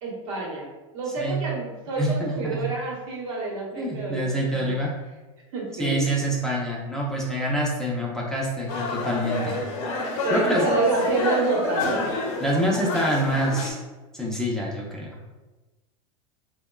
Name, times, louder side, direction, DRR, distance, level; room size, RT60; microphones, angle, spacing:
voice 1, 0.0-0.7 0.9-4.8 5.5-6.3 10.2-12.1, right 3 dB, 70° right, -2 dB, 0.9 m, -28 dB
voice 2, 2.0-2.6 3.8-4.9 5.8-9.6 10.3-10.7 12.4-13.8 14.1-15.1, right 1 dB, 5° left, -5 dB, 0.4 m, -26 dB
sound 1, 8.7-13.7, left 2 dB, 60° left, 0.6 m, -28 dB
2.8 x 2.1 x 2.2 m, 1.2 s
hypercardioid pair, 110°, 18 cm